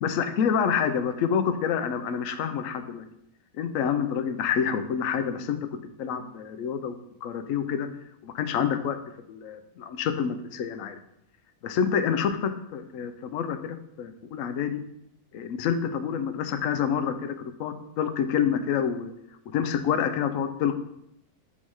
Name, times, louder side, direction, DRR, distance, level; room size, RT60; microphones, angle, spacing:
voice 1, 0.0-3.0 3.5-5.6 6.0-7.0 7.2-7.9 8.2-9.0 9.3-11.0 11.6-14.8 15.3-19.1 19.5-20.8, left 7 dB, 70° left, 9 dB, 0.9 m, -27 dB
5.9 x 4.0 x 4.7 m, 0.77 s
omnidirectional pair, 1.6 m